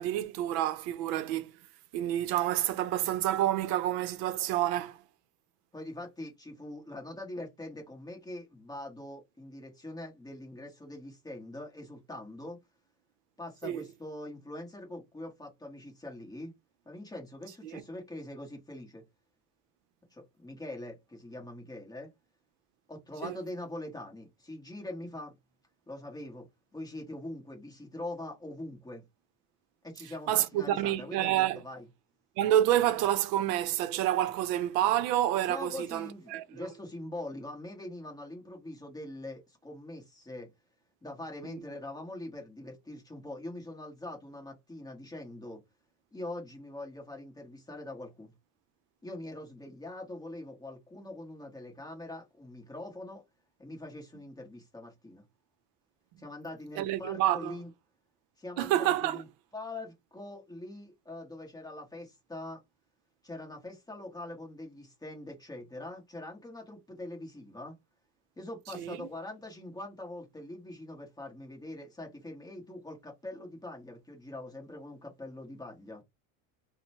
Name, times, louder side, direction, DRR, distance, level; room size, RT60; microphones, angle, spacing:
voice 1, 0.0-1.5 1.9-5.0 13.6-13.8 17.6-17.7 23.2-23.4 30.3-31.6 32.4-36.7 41.4-41.5 56.8-57.6 58.6-59.2 68.7-69.0, right 12 dB, 80° right, 0.7 m, -28 dB
voice 2, 5.7-12.6 13.4-16.5 16.9-19.0 20.1-22.1 22.9-25.3 25.9-26.4 26.7-29.0 29.8-31.9 35.5-40.5 41.0-45.6 46.1-48.3 49.0-53.2 53.6-55.2 56.2-57.7 58.4-59.3 59.5-62.6 63.2-67.7 68.4-76.0, left 1 dB, 10° left, 0.9 m, -43 dB
2.9 x 2.1 x 4.1 m
cardioid pair, 155°, 47 cm